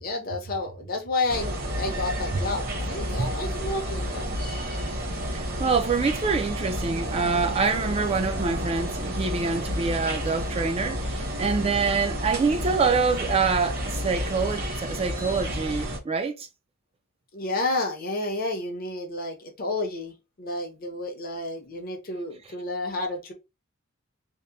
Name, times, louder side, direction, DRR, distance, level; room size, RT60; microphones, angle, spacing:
voice 1, 0.0-4.3 17.3-23.3, left 2 dB, 45° left, 0.7 m, -31 dB
sound 1, 1.3-16.0, equal, 45° right, 0.8 m, -31 dB
voice 2, 5.3-16.5, right 4 dB, 30° right, 0.3 m, -26 dB
2.8 x 2.1 x 2.2 m
head